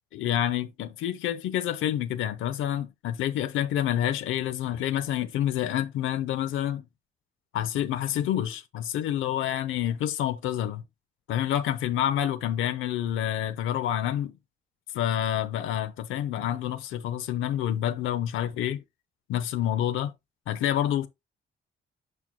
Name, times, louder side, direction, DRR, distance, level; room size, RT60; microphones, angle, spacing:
voice 1, 0.1-6.8 7.5-10.8 11.3-14.3 14.9-18.8 19.3-20.1 20.5-21.1, left 11 dB, 85° left, 0.7 m, -28 dB
10.5 x 4.3 x 2.2 m
cardioid pair, 90°, 20 cm